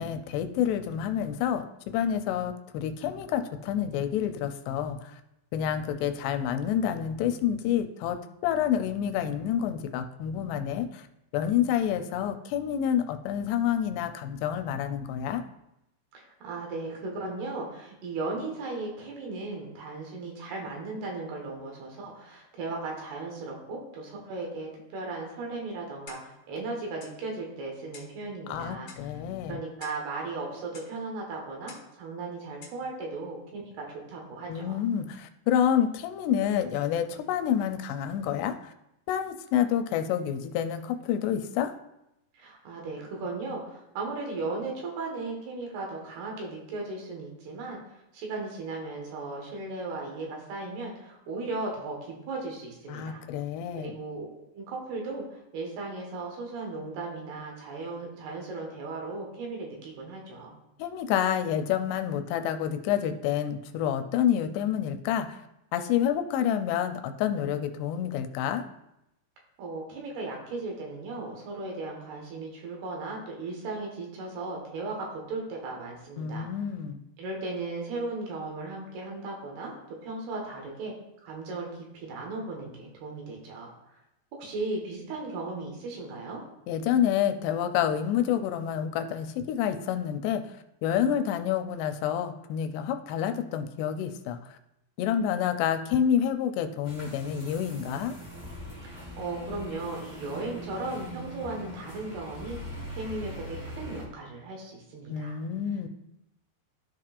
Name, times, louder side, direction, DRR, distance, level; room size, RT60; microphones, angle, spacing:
voice 1, 0.0-5.2 5.5-11.1 11.3-15.4 28.5-29.6 34.5-38.7 39.1-41.7 52.9-54.0 60.8-65.4 65.7-68.7 76.2-77.0 86.7-90.4 90.8-94.5 95.0-98.2 105.1-105.9, left 9 dB, 85° left, 8 dB, 2.7 m, -28 dB
voice 2, 16.1-28.9 29.5-34.8 42.3-47.8 48.1-53.2 53.8-54.3 54.5-60.5 69.6-76.5 77.2-80.9 81.2-81.7 81.9-83.7 84.3-86.4 98.8-102.6 102.9-105.4, right 3 dB, 75° right, 0 dB, 3.3 m, -36 dB
Clock, 26.1-26.4 27.0-27.2 27.9-28.2 28.9-29.1 29.8-30.1 30.7-31.0 31.7-31.9 32.6-32.8, left 5 dB, 65° left, 1.9 m, -49 dB
sound 1, 96.8-104.1, equal, 40° right, 1.0 m, -41 dB
13.5 x 4.5 x 2.5 m, 0.87 s
omnidirectional pair, 4.8 m